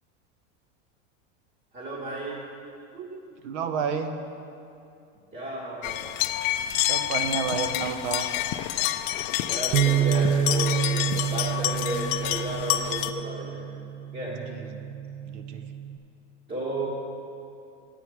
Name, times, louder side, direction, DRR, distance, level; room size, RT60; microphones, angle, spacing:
voice 1, 1.7-2.4 5.3-6.0 9.4-13.6 14.1-14.4 16.5-16.9, right 1 dB, 25° right, -6 dB, 1.7 m, -33 dB
voice 2, 2.9-4.1 6.8-8.3 14.3-15.0 15.3-15.6, right 6 dB, 65° right, 8 dB, 0.9 m, -31 dB
sound 1, 5.8-13.1, left 13 dB, 45° left, 0.4 m, -28 dB
Bass guitar, 9.7-16.0, right 8 dB, 50° right, 0.4 m, -28 dB
9.4 x 8.9 x 4.5 m, 2.6 s
supercardioid pair, 135°, 38 cm